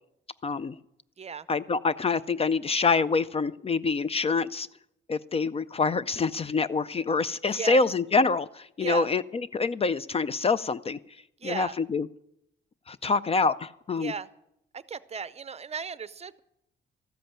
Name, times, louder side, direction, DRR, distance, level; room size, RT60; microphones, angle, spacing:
voice 1, 0.4-0.8 1.5-4.7 5.1-11.0 11.4-12.1 12.9-14.1, left 4 dB, 30° left, 17 dB, 0.4 m, -26 dB
voice 2, 7.3-7.8 8.8-9.1 11.4-11.7 14.0-14.3 14.7-16.4, right 6 dB, 30° right, 16 dB, 0.6 m, -36 dB
14.0 x 7.8 x 8.8 m, 0.79 s
cardioid pair, 90°, 20 cm